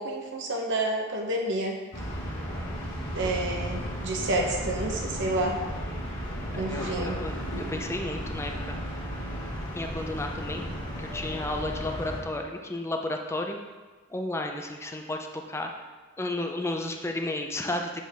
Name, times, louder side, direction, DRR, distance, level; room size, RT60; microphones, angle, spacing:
voice 1, 0.0-1.7 3.1-5.6 6.6-7.2, right 2 dB, 60° right, 1 dB, 0.8 m, -29 dB
sound 1, 1.9-12.2, equal, 65° left, 1.8 m, -34 dB
voice 2, 6.5-8.8 9.7-10.6 11.0-13.6 14.1-15.7 16.2-18.0, left 1 dB, 15° left, 3 dB, 0.4 m, -33 dB
7.5 x 3.8 x 3.4 m, 1.3 s
head